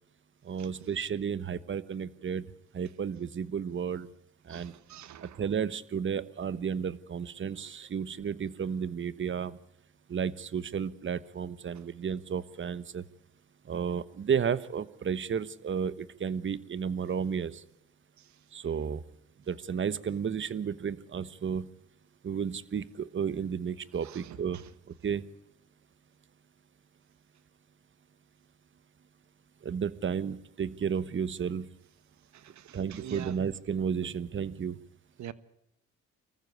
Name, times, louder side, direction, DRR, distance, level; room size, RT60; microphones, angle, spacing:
voice 1, 0.4-2.4 2.7-4.1 4.4-4.7 5.2-9.6 10.1-13.0 13.7-17.6 18.5-19.0 19.5-21.7 22.2-24.6 25.0-25.3 29.6-31.7 32.7-34.8, right 7 dB, 40° right, 1.2 m, -32 dB
voice 2, 4.5-5.4 24.0-24.4 32.3-33.3 35.2-35.3, right 10 dB, 70° right, 1.4 m, -44 dB
24.5 x 15.0 x 8.4 m
cardioid pair, 90°, 30 cm